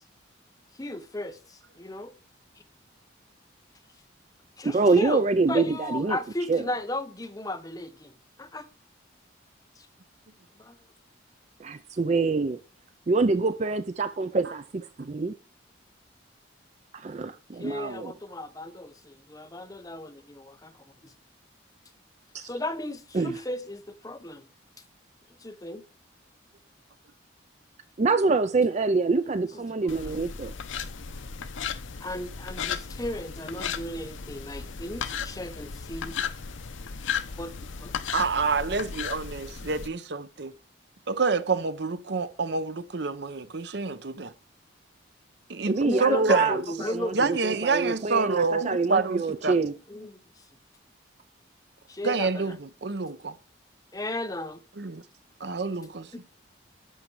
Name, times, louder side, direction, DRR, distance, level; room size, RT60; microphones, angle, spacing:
voice 1, 0.8-2.1 4.6-8.1 8.4-8.7 9.8-9.9 10.6-10.8 17.6-20.7 21.0-21.1 22.4-24.5 25.4-25.8 30.0-30.1 32.0-36.2 37.4-37.5 37.8-37.9 45.8-47.3 49.9-50.1 51.9-52.5 53.9-54.6, left 1 dB, 20° left, 0.7 m, -35 dB
voice 2, 4.6-6.2 6.5-6.7 11.6-12.6 13.1-15.3 16.9-18.1 22.3-22.5 23.1-23.4 28.0-30.5 45.7-49.8, right 3 dB, 35° right, 0.4 m, -26 dB
sound 1, 29.9-39.9, left 6 dB, 75° left, 0.8 m, -35 dB
voice 3, 38.1-40.5 41.1-44.3 45.5-46.6 47.1-49.6 52.0-53.3 54.8-55.0 55.4-56.1, right 4 dB, 60° right, 0.7 m, -27 dB
11.0 x 6.8 x 4.7 m
head